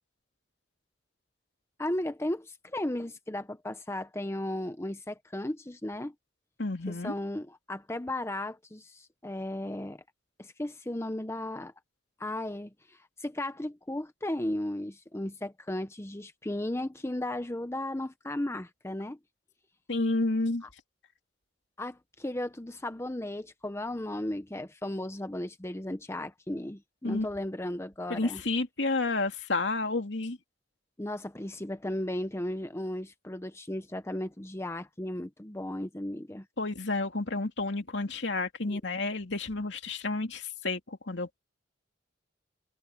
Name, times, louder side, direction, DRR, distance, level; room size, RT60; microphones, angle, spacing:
voice 1, 1.8-6.1 6.9-10.0 10.4-11.7 12.2-19.2 20.6-20.7 21.8-28.4 31.0-36.5 38.7-38.8, left 1 dB, 15° left, 0.8 m, -35 dB
voice 2, 6.6-7.1 19.9-20.7 27.0-27.3 28.1-30.4 36.6-41.4, left 2 dB, 70° left, 2.6 m, -30 dB
head